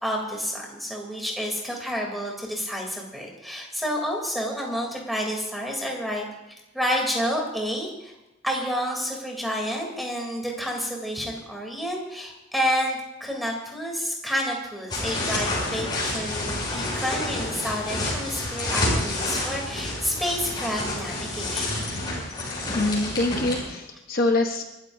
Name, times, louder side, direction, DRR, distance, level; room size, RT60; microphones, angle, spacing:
voice 1, 0.0-8.1 8.4-21.7, equal, ahead, 0 dB, 3.2 m, -29 dB
sound 1, 14.9-23.6, left 2 dB, 20° left, 6.7 m, -29 dB
voice 2, 22.7-24.6, left 2 dB, 45° left, 3 dB, 1.1 m, -24 dB
29.0 x 13.5 x 2.7 m, 0.98 s
head